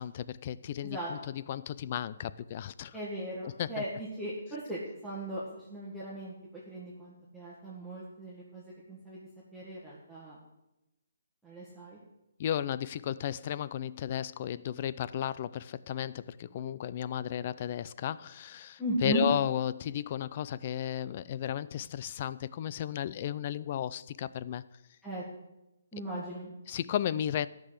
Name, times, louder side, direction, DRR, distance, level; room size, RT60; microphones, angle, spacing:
voice 1, 0.0-2.9 3.4-3.7 12.4-24.6 26.7-27.5, left 10 dB, 35° left, 17 dB, 0.4 m, -34 dB
voice 2, 0.8-1.1 2.9-6.3 6.7-10.4 11.4-12.0 18.8-19.3 25.0-25.2 25.9-26.5, right 1 dB, ahead, -10 dB, 1.9 m, -37 dB
13.0 x 6.1 x 8.0 m, 0.95 s
hypercardioid pair, 165°, 0 cm